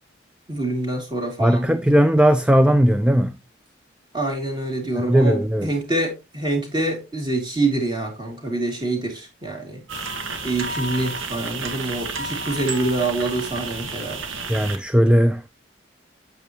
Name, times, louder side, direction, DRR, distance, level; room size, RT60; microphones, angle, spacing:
voice 1, 0.5-1.7 4.1-9.8 10.4-14.2, right 2 dB, 25° right, 3.0 m, -26 dB
voice 2, 1.4-3.4 5.0-5.7 14.5-15.5, equal, 5° right, 0.4 m, -17 dB
sound 1, 9.9-14.8, right 3 dB, 85° right, 1.6 m, -31 dB
8.8 x 8.2 x 2.9 m
head